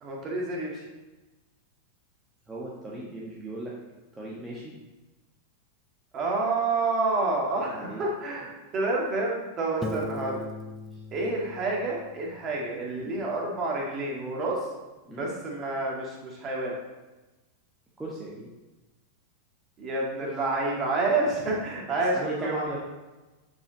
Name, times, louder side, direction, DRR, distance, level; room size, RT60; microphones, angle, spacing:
voice 1, 0.0-0.9 6.1-10.4 11.1-14.6 15.0-16.8 19.8-22.5, right 2 dB, 30° right, -2 dB, 2.0 m, -29 dB
voice 2, 2.5-3.7 4.1-4.7 7.6-8.0 9.8-10.0 10.9-11.0 12.9-13.1 15.1-15.3 18.0-18.5 20.2-20.3 22.1-22.8, right 1 dB, 10° right, -5 dB, 1.3 m, -37 dB
Piano, 9.8-12.6, left 2 dB, 10° left, 0.7 m, -39 dB
7.0 x 6.1 x 4.0 m, 1.1 s
figure-of-eight pair, 90°, 0 cm